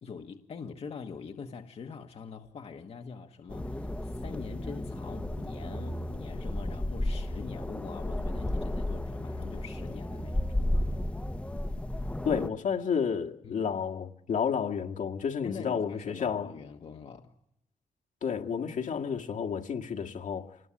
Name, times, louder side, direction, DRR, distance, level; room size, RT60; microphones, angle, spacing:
voice 1, 0.0-10.9 13.4-13.7 15.4-17.4, left 5 dB, 45° left, 1.3 m, -44 dB
sound 1, 3.5-12.5, left 1 dB, 10° left, 0.9 m, -33 dB
voice 2, 12.2-16.5 18.2-20.6, left 7 dB, 70° left, 2.0 m, -31 dB
28.0 x 20.5 x 9.9 m
wide cardioid pair, 170°, 14 cm